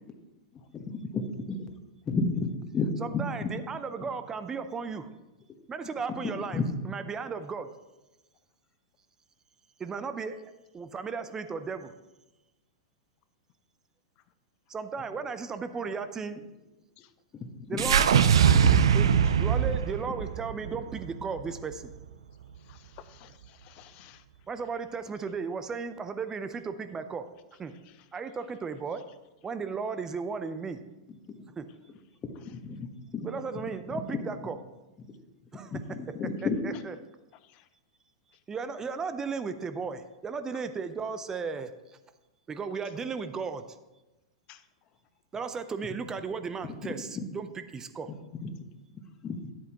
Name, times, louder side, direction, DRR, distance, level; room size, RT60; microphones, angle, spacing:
voice 1, 0.7-1.6 2.0-2.9 3.1-3.5 6.5-6.6 17.6-17.9 18.5-18.8 32.5-32.9 33.1-33.3 33.9-34.2 35.0-35.1 35.5-36.6 46.6-46.7 47.1-47.2 48.4-48.5 49.2-49.4, left 4 dB, 25° left, 5 dB, 1.2 m, -32 dB
voice 2, 3.0-5.1 5.7-7.7 9.8-10.4 10.7-11.9 14.7-16.4 17.7-18.1 18.9-21.9 24.5-27.3 27.6-27.7 28.1-29.0 29.4-30.8 31.6-31.7 33.2-34.6 35.5-35.8 36.4-36.9 38.5-42.0 42.5-43.6 45.3-48.1, right 5 dB, 20° right, 10 dB, 0.6 m, -35 dB
sound 1, 17.8-22.1, right 8 dB, 80° right, 0.4 m, -23 dB
voice 3, 22.6-24.2 27.9-28.0 37.4-37.7 44.5-44.6, left 13 dB, 45° left, 12 dB, 0.5 m, -54 dB
10.5 x 8.0 x 3.0 m, 1.1 s
hypercardioid pair, 105°, 3 cm